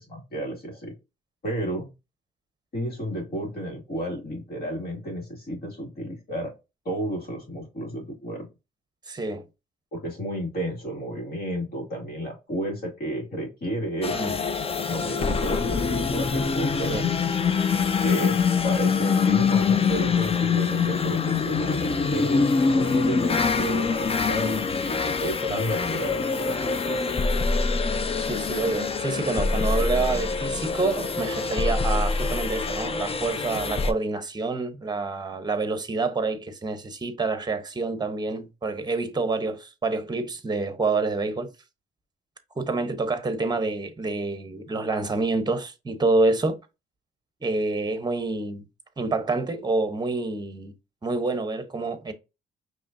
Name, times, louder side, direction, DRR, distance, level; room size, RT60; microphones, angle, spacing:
voice 1, 0.1-0.9 1.4-1.9 2.7-6.5 6.8-8.5 9.9-14.2 14.9-17.0 18.0-18.4 18.6-27.2, right 1 dB, 50° left, 2.2 m, -32 dB
voice 2, 9.1-9.4 14.1-14.4 16.8-17.1 25.4-25.6 28.2-41.5 42.5-46.6 47.4-48.7 49.0-50.7 51.0-52.1, right 3 dB, 20° right, 0.9 m, -27 dB
sound 1, 14.0-33.9, left 5 dB, 30° left, 0.5 m, -24 dB
5.0 x 3.1 x 2.6 m
cardioid pair, 90°, 20 cm